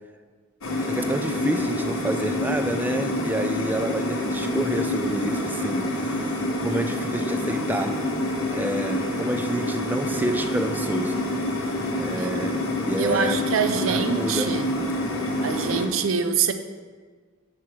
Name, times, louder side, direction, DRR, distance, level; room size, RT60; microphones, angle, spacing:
sound 1, 0.6-15.9, left 1 dB, 85° left, 0.9 m, -27 dB
voice 1, 0.8-6.2 6.5-8.0 8.5-11.2 11.5-13.5 13.9-14.5, right 1 dB, 10° right, 7 dB, 0.3 m, -29 dB
voice 2, 13.0-14.7 15.4-16.5, right 6 dB, 75° right, 9 dB, 0.5 m, -25 dB
5.8 x 4.7 x 6.2 m, 1.5 s
head